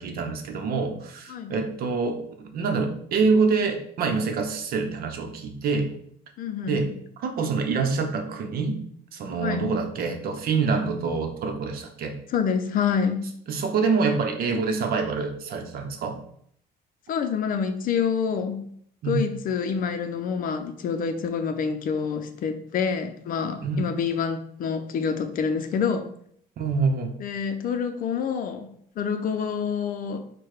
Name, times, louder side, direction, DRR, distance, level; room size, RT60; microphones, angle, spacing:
voice 1, 0.0-5.9 6.7-6.9 7.2-8.8 9.1-12.2 13.5-16.2 19.0-19.2 23.6-23.9 26.6-27.1, right 4 dB, 60° right, 0.8 m, -26 dB
voice 2, 1.3-1.7 6.4-7.0 9.4-9.8 12.3-13.2 17.1-18.6 19.0-26.1 27.2-30.2, left 6 dB, 55° left, 0.5 m, -27 dB
4.5 x 2.2 x 4.8 m
cardioid pair, 110°, 17 cm